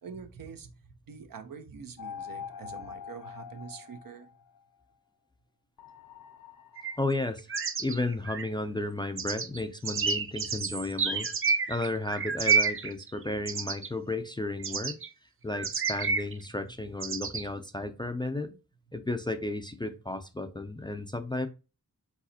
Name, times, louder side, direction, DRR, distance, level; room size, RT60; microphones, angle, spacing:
voice 1, 0.0-4.3 16.6-16.7, right 6 dB, 75° right, 0.8 m, -45 dB
sound 1, 2.0-4.6 5.8-7.1, left 7 dB, 70° left, 0.5 m, -44 dB
sound 2, 6.8-6.9 7.2-8.5 9.2-13.9 14.6-15.1 15.5-16.3 17.0-17.4, right 5 dB, 40° right, 0.5 m, -29 dB
voice 2, 7.0-7.5 7.8-11.3 11.7-15.0 15.4-18.6 18.9-21.5, left 2 dB, 15° left, 0.4 m, -33 dB
4.8 x 4.0 x 2.8 m
wide cardioid pair, 110°, 34 cm